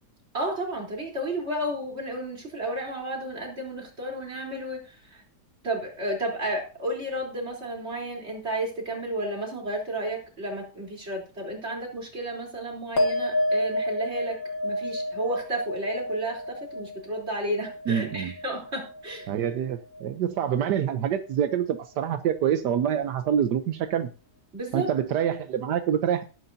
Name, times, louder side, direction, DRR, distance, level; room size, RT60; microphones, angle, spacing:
voice 1, 0.3-5.2 5.6-14.4 14.6-19.3 24.5-24.9, right 1 dB, 40° right, 0 dB, 4.1 m, -32 dB
sound 1, 13.0-19.7 19.9-20.6, left 1 dB, 55° left, 2.3 m, -30 dB
voice 2, 17.9-18.3 19.3-24.1 24.7-26.2, right 9 dB, 85° right, 8 dB, 1.4 m, -26 dB
18.5 x 9.2 x 2.7 m, 0.34 s
omnidirectional pair, 1.8 m